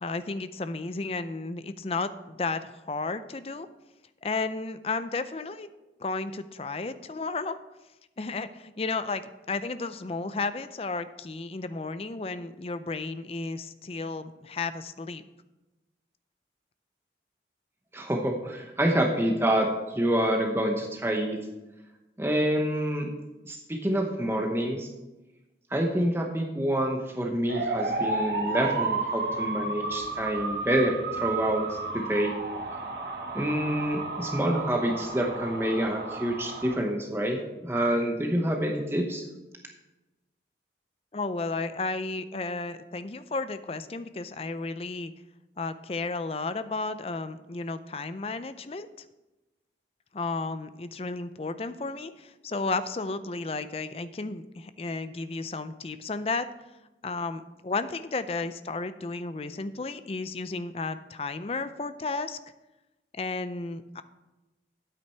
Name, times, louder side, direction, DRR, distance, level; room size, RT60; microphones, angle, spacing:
voice 1, 0.0-3.7 4.2-5.7 6.0-7.6 8.2-9.2 9.5-15.2 41.1-45.1 45.6-48.9 50.1-56.5 57.0-62.4 63.1-64.0, left 3 dB, 35° left, 12 dB, 0.5 m, -33 dB
voice 2, 17.9-21.4 22.2-23.1 23.4-24.9 25.7-32.4 33.3-39.3, right 1 dB, 15° right, 1 dB, 0.9 m, -27 dB
sound 1, 27.5-36.8, right 3 dB, 60° right, 1.4 m, -32 dB
9.4 x 8.6 x 4.6 m, 1.0 s
head